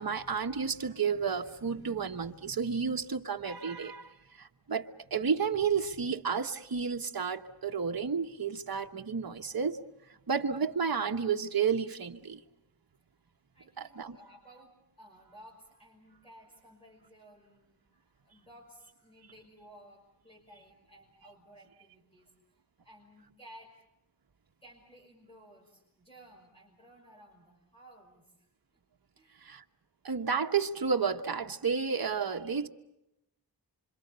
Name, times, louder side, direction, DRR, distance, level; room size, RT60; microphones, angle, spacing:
voice 1, 0.0-4.1 4.4-9.8 10.3-12.4 13.8-14.2 29.4-29.6 30.0-32.7, right 6 dB, 55° right, 4 dB, 1.4 m, -31 dB
voice 2, 13.5-22.4 22.8-23.8 24.6-28.5 29.1-29.5, right 1 dB, 15° left, -2 dB, 6.0 m, -56 dB
27.5 x 26.0 x 6.9 m, 0.88 s
wide cardioid pair, 100°, 42 cm